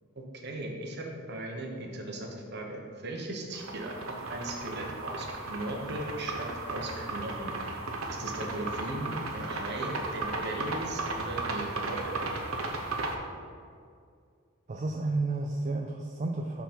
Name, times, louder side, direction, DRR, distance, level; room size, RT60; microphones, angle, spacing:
voice 1, 0.1-7.5 8.1-12.2, right 1 dB, 50° right, 1 dB, 1.0 m, -38 dB
sound 1, 3.5-13.2, right 2 dB, 80° right, 0.8 m, -35 dB
voice 2, 14.7-16.6, right 2 dB, 35° right, 2 dB, 0.3 m, -31 dB
6.9 x 4.0 x 5.9 m, 2.2 s
head